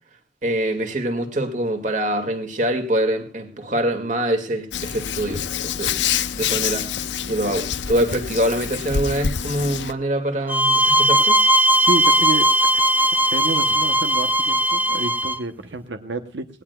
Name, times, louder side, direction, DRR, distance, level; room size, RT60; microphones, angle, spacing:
voice 1, 0.4-6.9 7.3-11.4, right 1 dB, 45° right, 6 dB, 2.2 m, -24 dB
Hands, 4.7-9.9, left 8 dB, 80° left, 0.7 m, -26 dB
sound 1, 10.5-15.4, equal, 10° right, 0.6 m, -18 dB
voice 2, 11.8-12.8 13.3-16.5, right 2 dB, 85° right, 7 dB, 1.0 m, -29 dB
19.5 x 18.0 x 2.3 m, 0.36 s
head